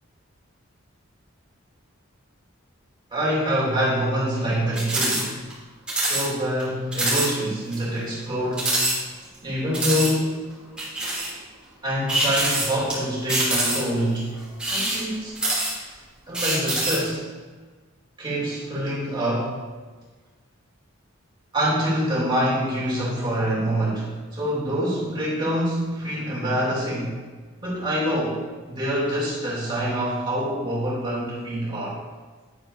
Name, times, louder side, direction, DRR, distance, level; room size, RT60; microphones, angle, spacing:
voice 1, 3.1-5.3 6.0-8.9 9.4-10.4 11.8-14.4 14.7-15.4 16.3-17.3 18.2-19.6 21.5-27.2 27.6-32.0, equal, 20° right, -6 dB, 2.8 m, -25 dB
sound 1, 4.7-5.2 5.5-5.6 5.9-6.3 6.6-6.7 6.9-7.3 7.7-7.8 8.5-9.3 9.7-10.1 10.8-11.3 12.1-12.9 13.3-14.0 14.5-15.9 16.3-17.1, right 1 dB, 5° right, 2.8 m, -24 dB
10.0 x 8.7 x 2.7 m, 1.3 s
head